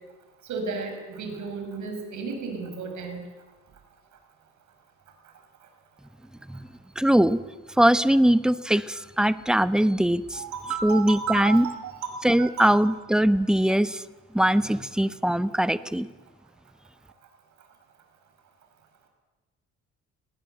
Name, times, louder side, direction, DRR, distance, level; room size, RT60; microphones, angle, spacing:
voice 1, 0.5-3.2 10.3-11.9 12.4-12.7, right 5 dB, 75° right, 4 dB, 5.5 m, -33 dB
voice 2, 7.0-7.4 7.8-10.4 10.8-11.6 12.2-14.0 14.3-16.1, right 1 dB, ahead, 14 dB, 0.9 m, -21 dB
20.0 x 19.0 x 7.9 m, 1.2 s
cardioid pair, 90°, 30 cm